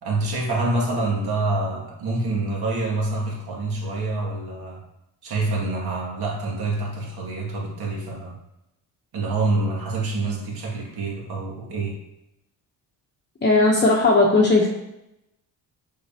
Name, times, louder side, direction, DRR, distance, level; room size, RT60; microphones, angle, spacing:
voice 1, 0.0-4.8 5.2-8.4 9.1-12.0, right 2 dB, 60° right, -2 dB, 2.3 m, -26 dB
voice 2, 13.4-14.7, left 2 dB, 25° left, -2 dB, 1.0 m, -17 dB
6.4 x 5.5 x 2.9 m, 0.88 s
cardioid pair, 85°, 42 cm